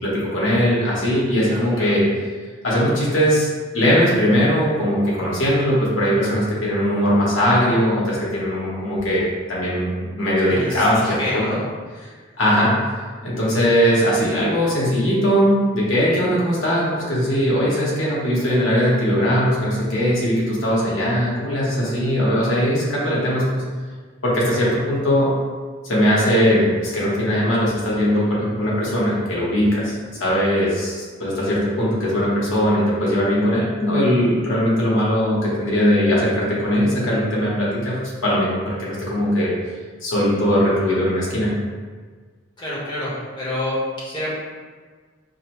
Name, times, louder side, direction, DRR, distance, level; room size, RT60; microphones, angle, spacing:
voice 1, 0.0-2.0 2.6-3.5 3.7-9.9 10.2-11.6 12.4-12.7 13.2-23.6 24.2-25.3 25.8-39.5 40.0-41.5, equal, 80° left, -6 dB, 1.2 m, -20 dB
voice 2, 1.5-1.9 10.4-11.6 42.6-44.4, left 1 dB, 25° left, -7 dB, 1.0 m, -28 dB
4.9 x 2.2 x 3.0 m, 1.5 s
head